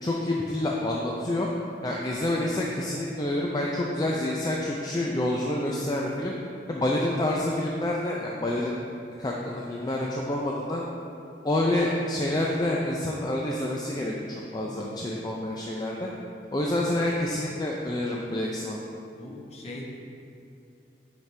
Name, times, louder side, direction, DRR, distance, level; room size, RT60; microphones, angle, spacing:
voice 1, 0.0-1.5 1.8-6.3 6.7-8.8 9.2-10.8 11.4-16.1 16.5-18.8, left 1 dB, 25° left, -2 dB, 0.4 m, -28 dB
voice 2, 14.7-15.0 19.1-19.8, left 1 dB, 40° left, -3 dB, 1.0 m, -41 dB
9.1 x 5.1 x 3.3 m, 2.6 s
head